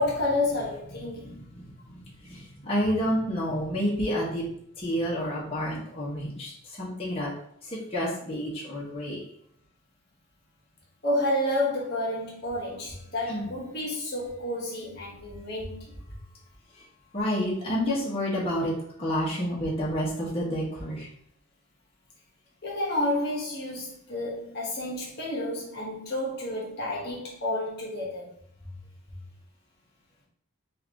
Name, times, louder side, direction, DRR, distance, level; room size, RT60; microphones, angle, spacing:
voice 1, 0.0-1.4 11.0-16.0 22.6-28.3, left 1 dB, 50° left, -4 dB, 1.1 m, -30 dB
voice 2, 2.6-4.4 4.8-6.5 6.8-7.3 7.9-9.2 13.3-13.5 17.1-18.7 19.0-21.1, equal, 30° left, -6 dB, 1.1 m, -28 dB
4.6 x 2.5 x 3.5 m, 0.67 s
head